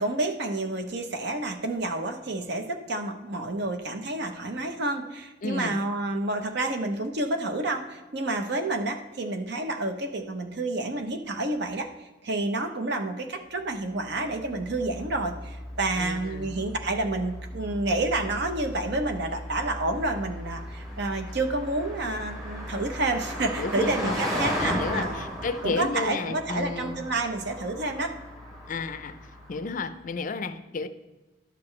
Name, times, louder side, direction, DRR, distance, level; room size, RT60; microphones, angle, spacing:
voice 1, 0.0-11.9 12.2-25.1 25.6-28.1, right 2 dB, 60° right, 7 dB, 0.8 m, -29 dB
voice 2, 5.4-5.8 15.9-16.6 23.6-24.2 24.6-27.0 28.7-29.2 29.5-30.9, left 3 dB, 45° left, 12 dB, 0.4 m, -32 dB
Car passing by, 14.1-29.9, equal, 15° right, 2.1 m, -36 dB
11.5 x 6.8 x 3.2 m, 1.1 s
head